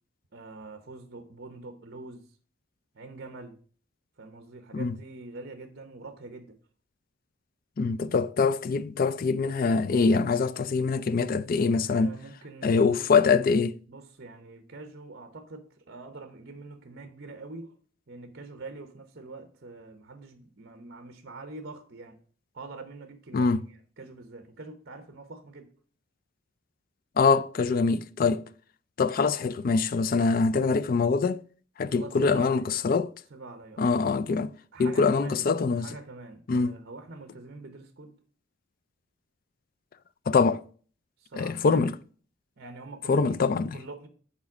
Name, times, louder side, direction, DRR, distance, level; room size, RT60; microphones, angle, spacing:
voice 1, 0.3-2.3 2.9-3.6 4.2-6.6 11.8-13.1 13.9-17.7 18.1-22.2 22.5-23.5 24.0-25.7 31.9-32.7 33.3-33.9 34.7-35.5 35.7-38.2 41.2-41.8 42.6-43.4 43.7-44.1, right 3 dB, 50° right, 0.8 m, -44 dB
voice 2, 7.8-12.2 12.6-13.8 23.3-23.6 27.2-28.5 29.0-31.4 31.8-33.1 33.8-34.5 34.8-35.9 36.5-36.7 40.3-40.6 41.4-41.9 43.1-43.7, left 4 dB, 45° left, 0.4 m, -24 dB
7.1 x 4.5 x 6.0 m
head